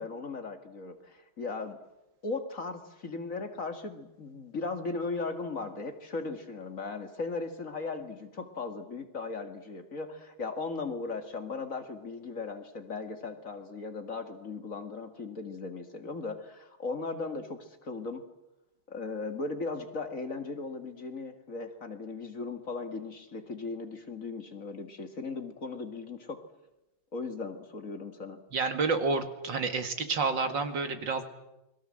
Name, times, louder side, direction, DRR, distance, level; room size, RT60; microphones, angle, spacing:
voice 1, 0.0-1.8 2.2-18.2 18.9-26.4 27.1-28.4, left 3 dB, 45° left, 7 dB, 2.3 m, -37 dB
voice 2, 28.5-31.2, right 4 dB, 65° right, 7 dB, 2.8 m, -29 dB
29.0 x 22.0 x 7.7 m, 0.94 s
omnidirectional pair, 2.1 m